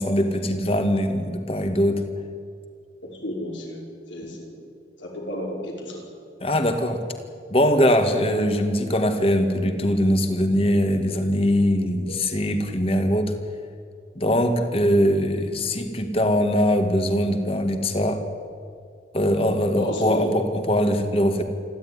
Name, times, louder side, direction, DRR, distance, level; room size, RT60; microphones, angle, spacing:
voice 1, 0.0-2.0 6.4-7.0 7.5-13.3 14.2-18.2 19.1-21.4, equal, 30° left, 7 dB, 1.9 m, -21 dB
voice 2, 3.0-3.8 4.1-4.6 5.0-6.0 12.1-12.2 19.7-20.3, left 1 dB, 90° left, -1 dB, 5.7 m, -32 dB
28.0 x 12.0 x 9.9 m, 2.3 s
head